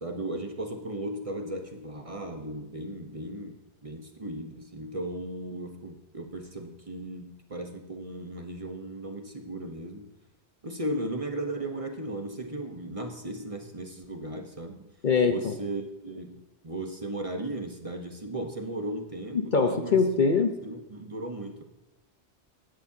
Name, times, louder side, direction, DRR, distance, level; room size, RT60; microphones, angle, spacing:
voice 1, 0.0-10.1 10.6-14.9 15.3-16.4 16.6-20.0 20.6-21.6, right 1 dB, 30° right, 5 dB, 1.1 m, -36 dB
voice 2, 15.0-15.5 19.3-20.5, left 5 dB, 45° left, 6 dB, 0.9 m, -23 dB
15.5 x 11.5 x 2.8 m, 1.0 s
omnidirectional pair, 1.2 m